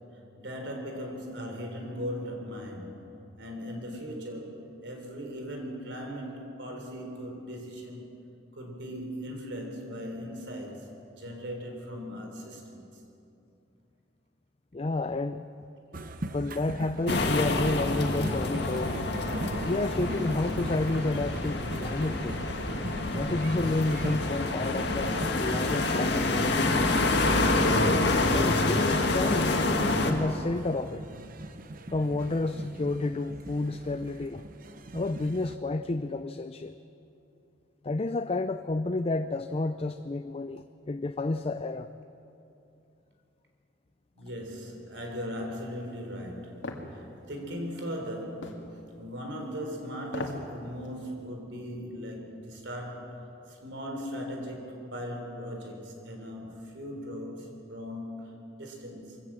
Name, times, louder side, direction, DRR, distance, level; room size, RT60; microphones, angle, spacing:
voice 1, 0.4-3.1 3.4-8.0 8.5-13.0 44.2-53.2 53.5-59.2, equal, 75° right, 2 dB, 4.0 m, -38 dB
voice 2, 14.7-15.5 16.3-19.0 19.7-22.4 23.1-27.1 28.3-29.5 30.0-31.0 31.9-34.4 34.9-36.8 37.8-41.9, left 2 dB, 30° left, 10 dB, 0.5 m, -30 dB
sound 1, 15.9-35.6, right 1 dB, 50° right, 1.0 m, -40 dB
sound 2, 17.1-30.1, left 2 dB, 65° left, 2.0 m, -27 dB
sound 3, 46.6-46.9 48.4-48.6 50.0-50.5 50.9-51.0, left 2 dB, 80° left, 2.2 m, -36 dB
23.0 x 16.5 x 7.5 m, 2.8 s
head